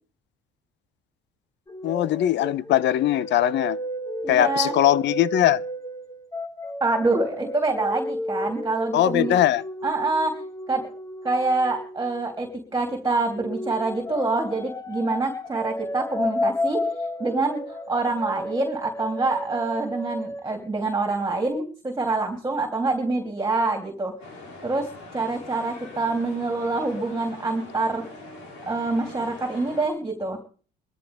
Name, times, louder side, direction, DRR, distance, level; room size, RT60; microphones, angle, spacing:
sound 1, 1.7-12.7 13.4-20.5, left 1 dB, 15° left, 1.2 m, -33 dB
voice 1, 1.8-3.8 4.3-5.6 8.9-9.6, left 12 dB, 65° left, 0.7 m, -20 dB
voice 2, 4.2-4.7 6.8-9.3 9.8-10.4 10.7-10.9 11.2-16.9 17.2-24.1 24.6-28.0 28.7-30.4, right 3 dB, 15° right, 3.0 m, -26 dB
sound 2, 24.2-29.9, left 2 dB, 85° left, 5.7 m, -43 dB
22.5 x 13.0 x 3.5 m
cardioid pair, 100°, 20 cm